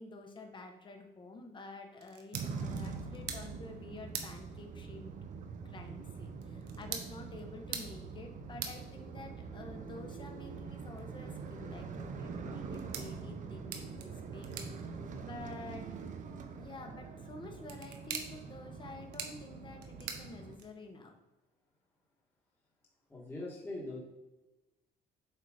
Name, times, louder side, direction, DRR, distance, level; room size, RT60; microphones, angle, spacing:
voice 1, 0.0-5.1 5.5-15.9 16.5-21.1, left 3 dB, 30° left, 4 dB, 1.1 m, -49 dB
sound 1, 1.9-21.0, right 7 dB, 85° right, 0.9 m, -48 dB
sound 2, 2.3-20.6, right 5 dB, 50° right, 0.7 m, -44 dB
voice 2, 23.1-24.0, left 2 dB, 15° left, -4 dB, 1.5 m, -41 dB
7.6 x 2.8 x 4.9 m, 1.0 s
cardioid pair, 110°, 17 cm